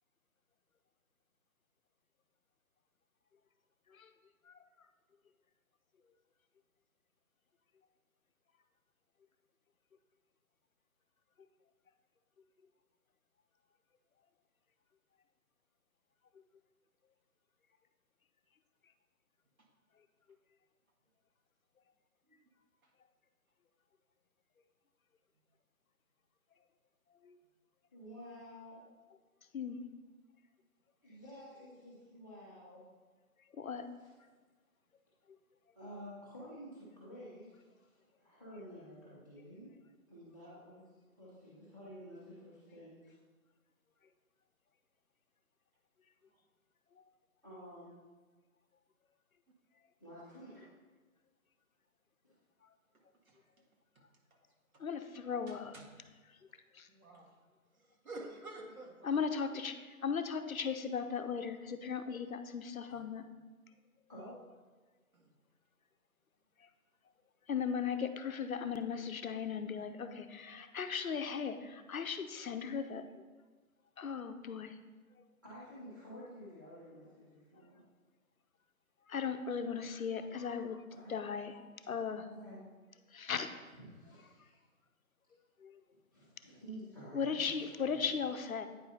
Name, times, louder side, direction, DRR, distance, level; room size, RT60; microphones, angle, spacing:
voice 1, 27.9-28.8 31.0-32.8 34.0-34.3 35.7-39.7 40.1-43.2 47.4-47.9 50.0-50.6 52.2-52.3 62.9-63.0 64.1-64.4 75.4-77.8 80.9-81.1 82.3-82.6 83.7-84.6 86.1-88.1, equal, 15° right, -10 dB, 1.1 m, -51 dB
voice 2, 33.5-33.9 54.8-55.7 56.7-56.9 59.0-63.2 66.6-66.7 67.5-73.0 74.0-74.8 79.1-80.8 81.1-82.3 83.1-83.5 85.6-85.8 87.1-88.7, left 6 dB, 70° left, 9 dB, 0.6 m, -37 dB
voice 3, 55.5-55.8 56.9-57.3 57.7-59.2 65.1-65.3, right 2 dB, 70° right, -1 dB, 1.7 m, -50 dB
9.1 x 4.9 x 2.7 m, 1.3 s
hypercardioid pair, 175°, 44 cm